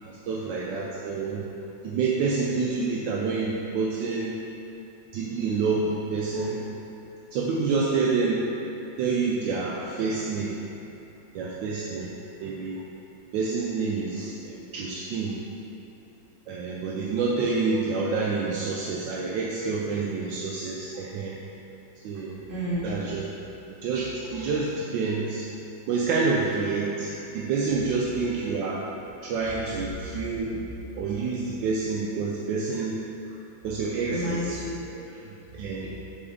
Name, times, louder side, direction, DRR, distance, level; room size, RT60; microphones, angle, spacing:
voice 1, 0.0-1.4 1.8-4.4 5.1-6.6 7.3-8.4 9.0-10.5 11.3-12.1 12.4-12.8 13.3-15.4 16.5-21.3 22.0-22.4 22.8-23.2 23.8-25.4 25.9-28.8 29.2-30.6 31.0-33.0 33.6-34.4 35.6-35.9, right 4 dB, 75° right, -4 dB, 1.2 m, -28 dB
voice 2, 22.5-23.0 34.1-35.6, equal, 30° right, -10 dB, 1.6 m, -32 dB
7.0 x 4.3 x 3.6 m, 3.0 s
omnidirectional pair, 2.1 m